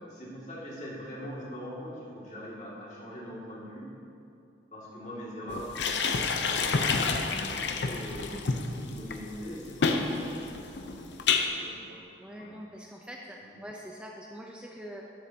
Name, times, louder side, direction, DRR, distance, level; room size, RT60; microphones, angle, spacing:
voice 1, 0.1-3.9 4.7-8.5 8.8-12.0 12.4-12.5 13.5-13.6, equal, 40° left, -6 dB, 2.2 m, -42 dB
sound 1, 5.5-11.4, left 4 dB, 85° left, 0.7 m, -29 dB
voice 2, 12.2-15.1, equal, 5° right, -1 dB, 0.5 m, -44 dB
12.0 x 10.0 x 2.8 m, 2.6 s
head